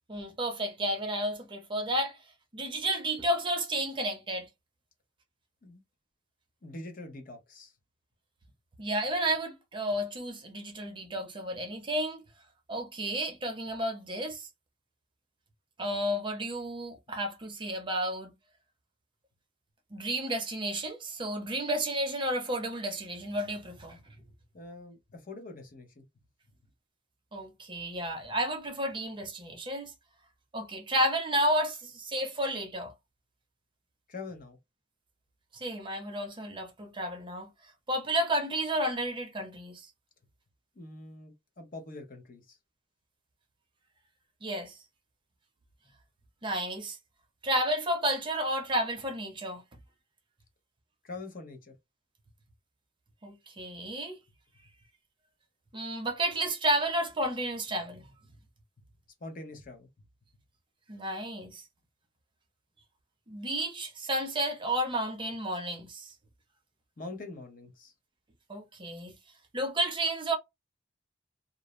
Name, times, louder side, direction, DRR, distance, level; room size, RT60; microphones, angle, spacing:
voice 1, 0.1-2.2 2.5-4.5 8.8-12.2 12.7-14.5 15.8-18.3 19.9-24.0 27.3-29.9 30.5-32.9 35.5-37.5 37.9-39.9 44.4-44.7 46.4-47.0 47.4-49.6 53.2-54.2 55.7-58.0 60.9-61.6 63.3-66.1 68.5-69.1 69.5-70.4, right 1 dB, 25° right, 0.6 m, -31 dB
voice 2, 6.6-7.7 24.5-26.0 34.1-34.6 40.8-42.6 51.0-51.7 59.2-60.1 67.0-67.9, left 2 dB, 45° left, 0.7 m, -44 dB
2.5 x 2.0 x 2.9 m
head